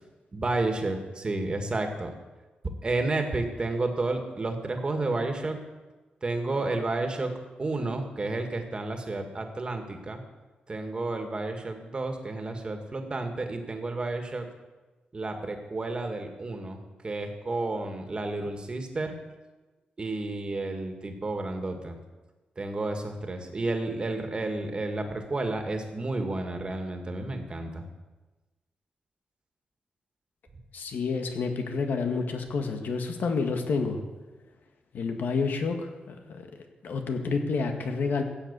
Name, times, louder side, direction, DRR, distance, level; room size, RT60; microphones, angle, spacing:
voice 1, 0.3-2.1 2.8-5.6 6.2-7.3 7.6-10.2 10.7-14.4 15.1-19.2 20.0-22.0 22.6-27.9, right 2 dB, 30° right, 5 dB, 2.1 m, -31 dB
voice 2, 30.7-34.0 34.9-36.5 36.8-38.2, left 4 dB, 75° left, 5 dB, 1.9 m, -29 dB
15.5 x 8.3 x 8.3 m, 1.2 s
wide cardioid pair, 125°, 3 cm